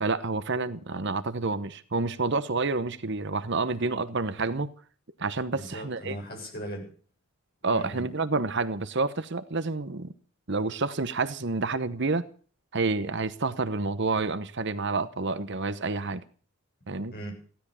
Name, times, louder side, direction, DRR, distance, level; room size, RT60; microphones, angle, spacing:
voice 1, 0.0-4.7 5.2-6.2 7.6-10.1 10.5-12.3 12.7-16.2 16.9-17.1, right 3 dB, 55° right, 1.0 m, -29 dB
voice 2, 5.5-6.9 7.6-8.0 17.1-17.3, right 1 dB, 45° left, 7.9 m, -38 dB
16.0 x 13.0 x 7.0 m
head